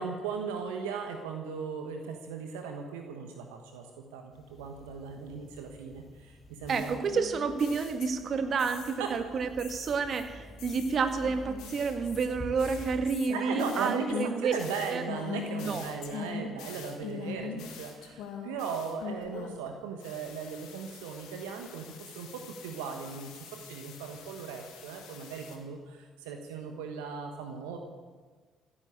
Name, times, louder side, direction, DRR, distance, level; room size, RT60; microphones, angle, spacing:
voice 1, 0.0-3.9 4.1-6.9 9.0-9.1 13.3-27.8, right 5 dB, 75° right, 4 dB, 1.3 m, -37 dB
sound 1, 4.3-13.1, left 1 dB, 30° left, 2.5 m, -48 dB
sound 2, 6.7-9.2 9.6-19.7 20.0-25.6, left 6 dB, 70° left, 2.2 m, -42 dB
voice 2, 6.7-14.5 14.9-15.0 15.6-15.9, right 5 dB, 50° right, 7 dB, 1.8 m, -30 dB
15.5 x 11.5 x 8.2 m, 1.5 s
hypercardioid pair, 50°, 0 cm